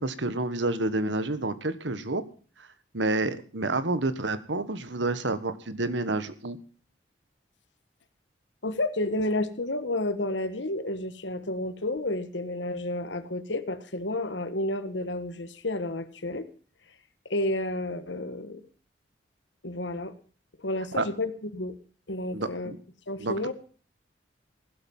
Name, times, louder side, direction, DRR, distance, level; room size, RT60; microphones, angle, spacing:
voice 1, 0.0-2.2 2.9-6.6 20.9-21.0 22.3-22.8 23.2-23.3, right 2 dB, 80° right, 12 dB, 1.5 m, -29 dB
voice 2, 8.6-16.5 17.3-18.6 19.6-20.1 20.6-21.7 22.1-22.7 23.1-23.5, left 1 dB, 80° left, 12 dB, 1.6 m, -31 dB
16.0 x 12.0 x 5.5 m, 0.41 s
head